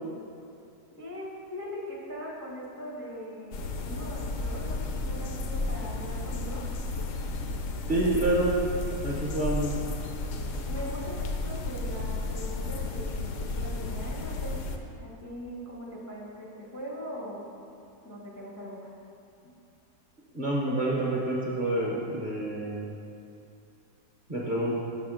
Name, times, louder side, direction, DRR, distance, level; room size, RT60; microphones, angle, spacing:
voice 1, 1.0-6.6 10.7-14.5 15.0-17.5 18.0-18.9, equal, 20° left, -5 dB, 0.5 m, -40 dB
sound 1, 3.5-14.8, left 3 dB, 65° left, 0.8 m, -33 dB
voice 2, 7.9-8.6 9.0-9.8 20.3-22.8 24.3-24.7, right 1 dB, 40° right, -4 dB, 0.8 m, -27 dB
6.0 x 4.2 x 6.2 m, 2.7 s
omnidirectional pair, 1.7 m